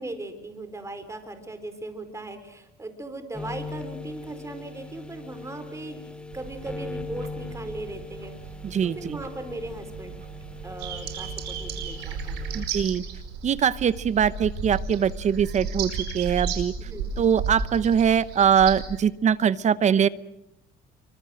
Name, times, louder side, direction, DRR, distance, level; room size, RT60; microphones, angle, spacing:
voice 1, 0.0-8.3 8.8-10.1 10.6-12.5 16.8-17.0, right 2 dB, 15° right, 9 dB, 4.3 m, -38 dB
sound 1, 3.3-12.6, left 3 dB, 5° left, 2.3 m, -40 dB
sound 2, 6.3-11.3, right 10 dB, 65° right, 3.0 m, -44 dB
voice 2, 8.6-9.2 12.5-13.0 13.4-16.7 17.2-20.1, right 8 dB, 45° right, 17 dB, 0.9 m, -22 dB
sound 3, 10.8-19.0, right 5 dB, 85° right, 5.2 m, -33 dB
27.0 x 24.0 x 7.7 m, 0.86 s
cardioid pair, 110°, 17 cm